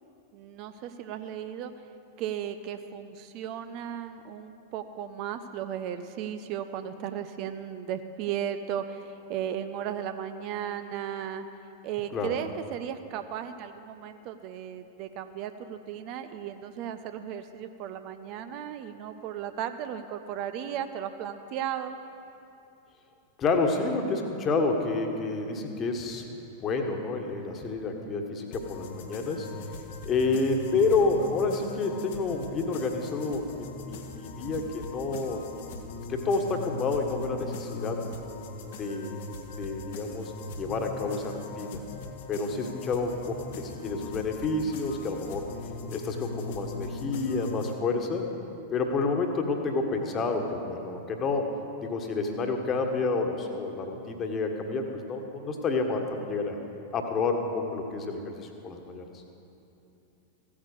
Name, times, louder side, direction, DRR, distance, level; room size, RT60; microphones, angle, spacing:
voice 1, 0.3-1.7 2.2-11.5 11.8-22.0, right 9 dB, 40° right, 9 dB, 0.6 m, -35 dB
voice 2, 23.4-29.5 30.0-35.6 36.1-38.0 38.7-39.2 39.5-41.8 42.3-45.4 45.9-48.3 48.7-51.5 51.8-56.6 56.9-59.0, left 3 dB, 30° left, 4 dB, 1.5 m, -29 dB
sound 1, 28.5-47.7, left 3 dB, 55° left, 1.1 m, -40 dB
15.5 x 8.8 x 6.7 m, 2.8 s
figure-of-eight pair, 90°, 0 cm